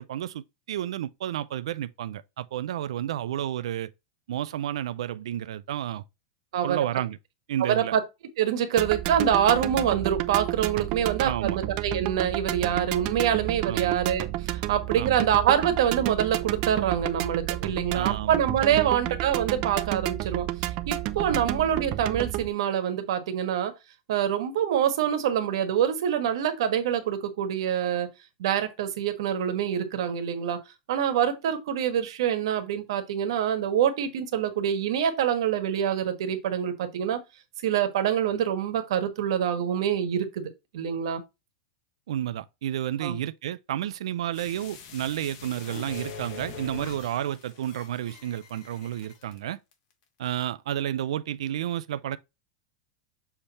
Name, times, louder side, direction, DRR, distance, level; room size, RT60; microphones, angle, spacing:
voice 1, 0.0-3.9 4.3-6.0 6.6-7.2 7.5-7.9 11.2-11.6 13.6-14.0 14.9-15.2 17.9-18.4 18.7-18.9 21.3-21.5 42.1-49.6 50.2-52.2, right 11 dB, 85° right, 0.5 m, -31 dB
voice 2, 7.6-8.0 8.4-20.5 20.9-23.7 24.1-28.1 28.4-30.6 30.9-37.2 37.6-41.2 43.0-43.1, right 9 dB, 65° right, 1.4 m, -25 dB
sound 1, 8.8-22.5, right 15 dB, 30° right, 0.5 m, -31 dB
sound 2, 44.3-49.4 49.7-49.8, left 6 dB, 40° left, 1.3 m, -43 dB
7.2 x 3.4 x 4.1 m
supercardioid pair, 175°, 3 cm